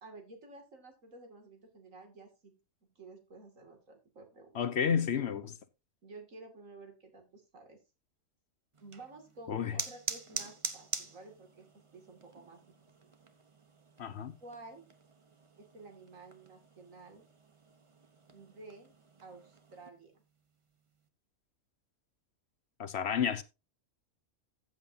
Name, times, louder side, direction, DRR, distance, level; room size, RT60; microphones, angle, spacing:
voice 1, 0.0-2.6 3.0-4.6 5.1-5.4 6.0-7.8 8.8-12.7 13.0-13.1 14.4-14.8 15.6-17.3 18.3-18.9 19.2-20.1, right 3 dB, 75° right, 2.9 m, -52 dB
voice 2, 4.5-5.5 9.5-9.8 14.0-14.4 22.8-23.4, left 7 dB, 60° left, 0.9 m, -31 dB
sound 1, 8.7-19.9, right 4 dB, 25° right, 0.9 m, -45 dB
14.5 x 7.8 x 2.8 m
omnidirectional pair, 1.4 m